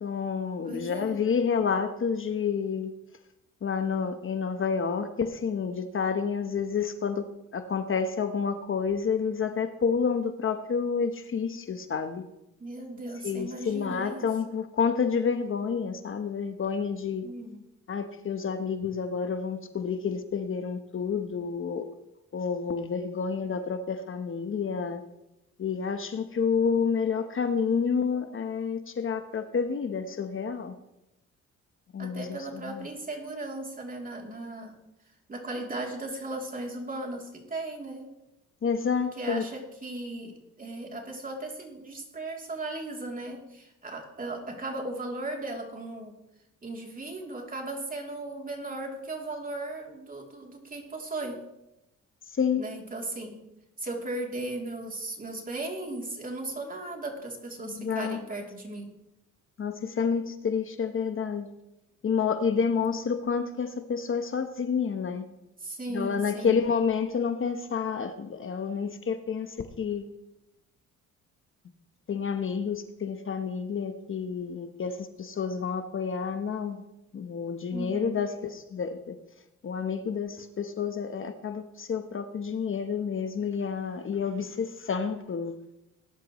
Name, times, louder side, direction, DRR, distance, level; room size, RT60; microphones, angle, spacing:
voice 1, 0.0-2.9 3.6-12.2 13.2-17.3 17.9-21.9 22.3-25.0 25.6-30.7 31.9-32.9 38.6-39.5 52.3-52.6 57.6-58.2 59.6-61.5 62.0-65.3 65.9-70.1 72.1-76.8 77.1-79.1 79.6-85.6, left 6 dB, 45° left, 8 dB, 1.1 m, -29 dB
voice 2, 0.6-1.3 12.6-14.2 17.2-17.6 32.0-34.8 35.3-38.1 39.2-46.2 46.6-51.4 52.6-53.4 53.8-58.9 62.8-63.2 65.6-66.7 77.7-78.2, right 2 dB, 30° right, 1 dB, 3.1 m, -37 dB
19.5 x 11.0 x 3.1 m, 0.90 s
cardioid pair, 90°, 30 cm